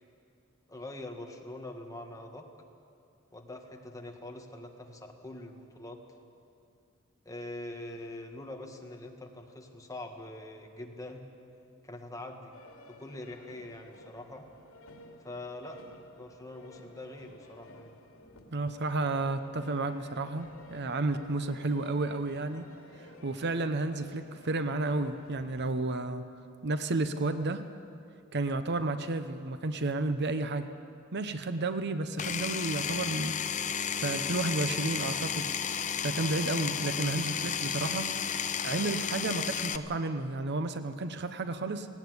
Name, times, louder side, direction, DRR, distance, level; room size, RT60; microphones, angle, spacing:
voice 1, 0.7-2.5 3.3-6.0 7.3-11.3 11.8-12.5 12.9-14.5 15.2-17.9, left 1 dB, 15° left, 2 dB, 1.8 m, -44 dB
sound 1, 12.5-25.9, left 1 dB, 85° left, 2.7 m, -54 dB
voice 2, 18.5-22.7 23.0-26.2 26.6-27.7 28.3-30.7 31.1-33.4 34.0-35.5 36.0-38.1 38.6-41.9, right 2 dB, 50° right, 10 dB, 0.8 m, -32 dB
Power tool, 32.2-39.8, left 7 dB, 35° left, 0.7 m, -33 dB
18.0 x 17.5 x 9.5 m, 2.5 s
head